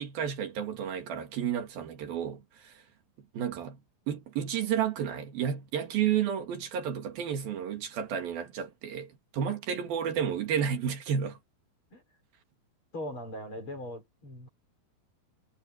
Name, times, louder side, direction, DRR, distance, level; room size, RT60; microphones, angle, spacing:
voice 1, 0.0-2.8 3.3-3.8 4.1-11.4, right 8 dB, 75° right, 3.9 m, -31 dB
voice 2, 12.9-14.5, equal, 35° left, 6.6 m, -40 dB
omnidirectional pair, 4.3 m